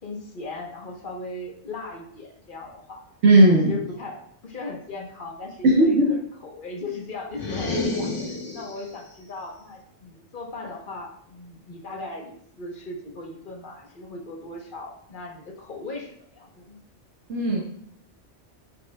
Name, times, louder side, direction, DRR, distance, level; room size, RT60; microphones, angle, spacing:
voice 1, 0.0-3.0 3.7-16.8, left 3 dB, 45° left, 1 dB, 1.3 m, -38 dB
voice 2, 3.2-3.7 5.6-6.1 17.3-17.6, right 1 dB, 80° right, -4 dB, 1.4 m, -16 dB
sound 1, 7.3-8.9, left 2 dB, 80° left, 1.7 m, -29 dB
9.2 x 5.2 x 2.3 m, 0.68 s
omnidirectional pair, 1.2 m